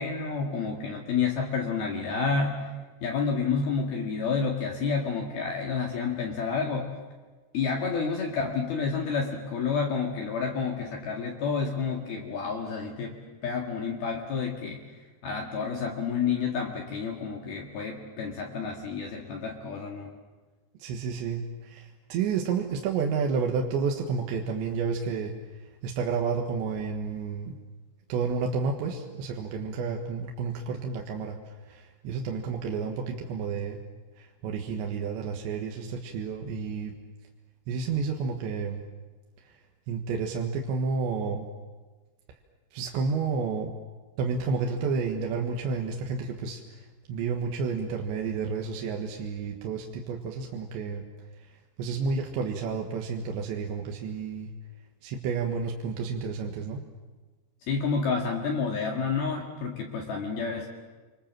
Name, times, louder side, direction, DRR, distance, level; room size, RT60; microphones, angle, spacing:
voice 1, 0.0-2.7 3.0-6.9 7.5-14.8 15.2-20.1 57.7-60.7, left 5 dB, 60° left, 0 dB, 3.5 m, -29 dB
voice 2, 20.8-25.3 25.8-27.6 28.1-33.8 34.2-37.0 37.7-38.8 39.5-39.6 39.9-41.4 42.7-43.7 44.2-51.0 51.4-54.5 55.0-56.8, right 5 dB, 70° right, 1 dB, 3.6 m, -31 dB
30.0 x 25.0 x 7.6 m, 1.3 s
omnidirectional pair, 5.7 m